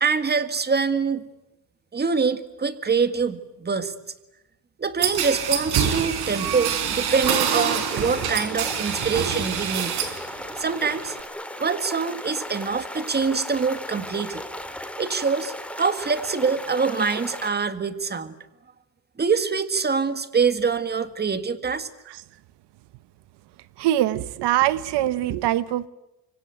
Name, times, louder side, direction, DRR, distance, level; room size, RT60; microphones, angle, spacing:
voice 1, 0.0-1.3 1.9-3.9 4.8-10.0 10.6-11.2 11.6-14.4 15.0-18.4 19.2-21.9, right 5 dB, 25° right, 11 dB, 1.9 m, -25 dB
sound 1, 5.0-10.2 10.6-11.2, right 8 dB, 70° right, 4.7 m, -26 dB
sound 2, 7.1-17.5, left 1 dB, 5° left, 2.6 m, -36 dB
voice 2, 23.8-25.9, right 13 dB, 85° right, 16 dB, 1.0 m, -23 dB
26.0 x 24.5 x 9.2 m, 0.94 s
cardioid pair, 135°, 40 cm